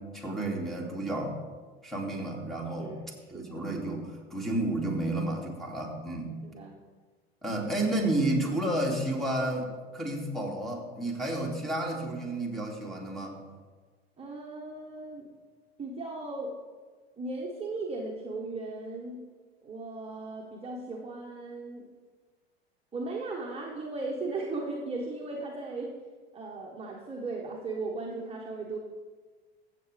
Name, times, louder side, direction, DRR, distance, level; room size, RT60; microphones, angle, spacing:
voice 1, 0.1-1.4 1.8-2.9 3.3-6.3 7.4-13.4, right 1 dB, ahead, -1 dB, 2.7 m, -31 dB
voice 2, 6.4-6.7 14.2-15.3 15.8-16.6 17.2-19.2 19.6-21.9 22.9-26.0 26.3-28.8, right 3 dB, 20° right, -2 dB, 1.5 m, -37 dB
15.5 x 7.7 x 3.5 m, 1.4 s
hypercardioid pair, 85°, 31 cm